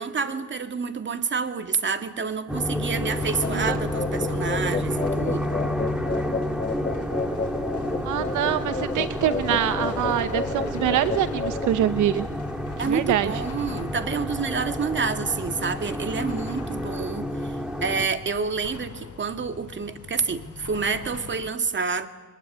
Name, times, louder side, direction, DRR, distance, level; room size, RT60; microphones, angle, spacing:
voice 1, 0.0-5.5 12.8-17.5 17.8-22.1, right 5 dB, 40° right, 8 dB, 2.1 m, -28 dB
sound 1, 2.5-18.1, left 1 dB, 5° right, 2.6 m, -30 dB
sound 2, 3.1-21.5, left 5 dB, 55° left, 7.1 m, -41 dB
sound 3, 3.4-11.7, left 4 dB, 25° left, 2.5 m, -31 dB
voice 2, 3.4-3.8 8.0-12.2 12.8-13.3, right 11 dB, 80° right, 12 dB, 1.0 m, -25 dB
23.5 x 21.0 x 9.7 m, 1.2 s
cardioid pair, 90°, 30 cm